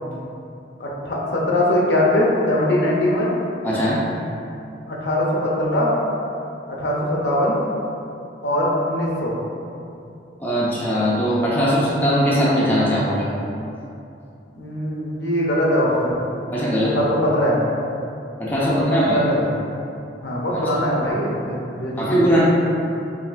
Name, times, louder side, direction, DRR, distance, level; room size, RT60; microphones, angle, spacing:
voice 1, 0.8-3.3 4.9-5.9 6.7-7.5 8.4-9.3 14.5-16.2 16.8-17.6 18.6-19.5 20.2-22.2, left 1 dB, 70° left, -4 dB, 0.7 m, -21 dB
voice 2, 3.6-4.0 10.4-13.3 16.5-17.0 18.4-19.2 22.0-22.5, equal, 10° left, -8 dB, 0.6 m, -20 dB
5.6 x 2.6 x 2.5 m, 2.7 s
head